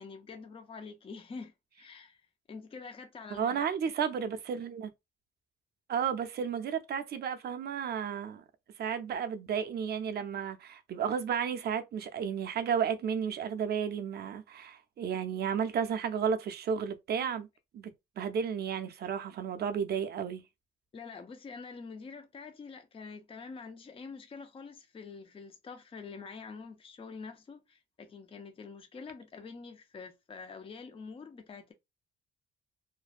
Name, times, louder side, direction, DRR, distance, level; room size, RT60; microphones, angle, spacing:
voice 1, 0.0-2.2 2.5-3.7 20.9-31.7, left 5 dB, 25° left, 0.5 m, -46 dB
voice 2, 3.3-4.9 5.9-8.4 8.8-17.5 17.7-20.4, right 7 dB, 55° right, 0.5 m, -33 dB
2.5 x 2.1 x 2.4 m
cardioid pair, 90°, 20 cm